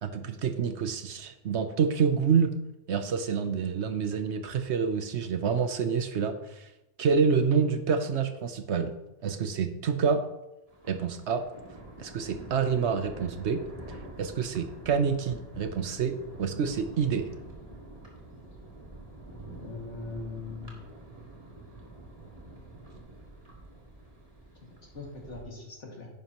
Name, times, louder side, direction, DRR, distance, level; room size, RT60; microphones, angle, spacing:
voice 1, 0.0-2.5 2.9-6.6 7.0-8.9 9.2-10.2 10.9-11.4 12.0-13.6 14.2-17.3, right 6 dB, 65° right, 9 dB, 1.0 m, -27 dB
Thunder, 10.7-25.4, right 1 dB, 30° right, 2.0 m, -47 dB
voice 2, 19.5-20.7 24.9-26.1, left 3 dB, 65° left, -1 dB, 2.5 m, -40 dB
10.5 x 9.6 x 3.0 m, 0.95 s
omnidirectional pair, 1.3 m